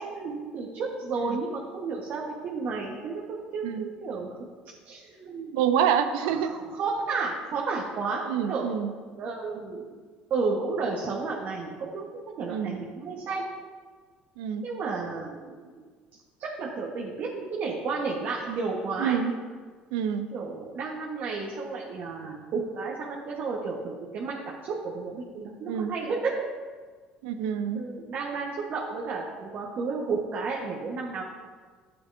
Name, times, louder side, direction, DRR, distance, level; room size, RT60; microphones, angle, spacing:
voice 1, 0.0-4.4 4.8-5.5 6.2-8.7 9.2-10.0 10.3-13.4 14.6-15.9 16.4-19.2 20.3-26.3 27.7-31.2, right 4 dB, 55° right, -3 dB, 1.5 m, -32 dB
voice 2, 5.5-6.5 8.3-8.9 12.5-12.8 14.4-14.7 19.0-19.3 19.9-20.3 25.7-26.0 27.2-27.8, right 8 dB, 85° right, 8 dB, 0.7 m, -27 dB
12.5 x 7.9 x 2.8 m, 1.5 s
supercardioid pair, 80°, 4 cm